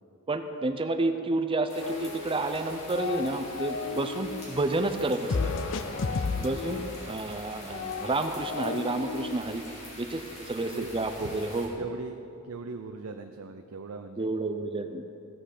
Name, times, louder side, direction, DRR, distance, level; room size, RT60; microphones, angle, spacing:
voice 1, 0.3-5.5 6.4-9.6 10.0-11.8 14.2-15.0, right 2 dB, 25° right, 8 dB, 0.5 m, -30 dB
sound 1, 1.7-11.7, left 1 dB, 30° left, 3.1 m, -45 dB
sound 2, 1.8-2.6 2.8-4.5 5.3-9.4, left 4 dB, 65° left, 0.6 m, -33 dB
voice 2, 10.6-10.9 11.2-11.4 11.8-12.2 12.4-14.3, right 4 dB, 85° right, 6 dB, 0.6 m, -39 dB
16.0 x 7.7 x 6.6 m, 2.8 s
head